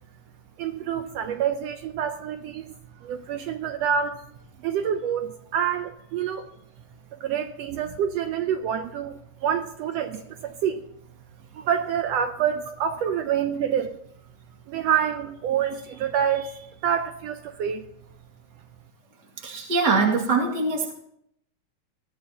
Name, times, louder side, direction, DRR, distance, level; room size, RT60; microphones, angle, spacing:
voice 1, 0.6-2.7 3.0-4.2 4.6-6.5 7.1-10.9 11.5-14.0 14.7-17.9, right 8 dB, 75° right, 1.6 m, -27 dB
voice 2, 19.4-20.9, right 4 dB, 40° right, 2.6 m, -23 dB
21.0 x 14.5 x 2.9 m
omnidirectional pair, 3.3 m